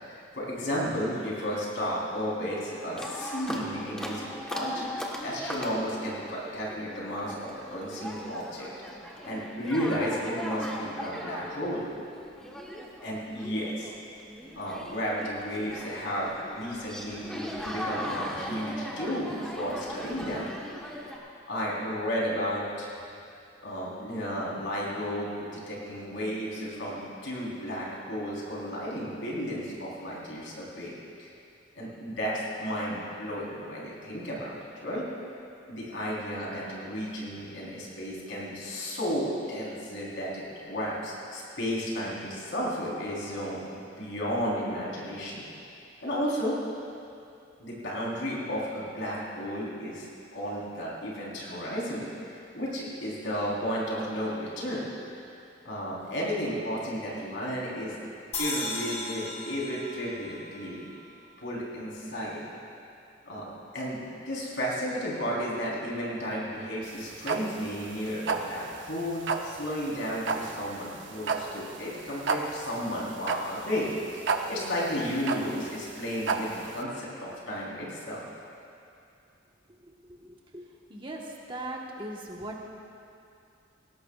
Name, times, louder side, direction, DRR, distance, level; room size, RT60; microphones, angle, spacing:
voice 1, 0.0-8.7 9.2-11.8 13.0-13.9 14.6-20.5 21.5-22.9 23.6-30.9 31.2-31.3 31.7-34.5 34.8-35.1 35.7-45.5 46.0-46.6 47.6-50.1 50.3-54.9 55.6-58.0 58.4-60.9 61.4-62.4 63.2-73.9 74.5-78.2, equal, 70° left, -5 dB, 4.1 m, -33 dB
sound 1, 3.0-21.2, equal, 5° left, 1.3 m, -39 dB
sound 2, 58.3-61.6, left 2 dB, 35° left, 2.0 m, -37 dB
sound 3, 66.8-76.8, right 4 dB, 70° right, 0.8 m, -32 dB
voice 2, 79.8-80.6 80.9-82.6, right 1 dB, 25° right, -1 dB, 1.4 m, -39 dB
20.0 x 17.5 x 2.5 m, 2.6 s
head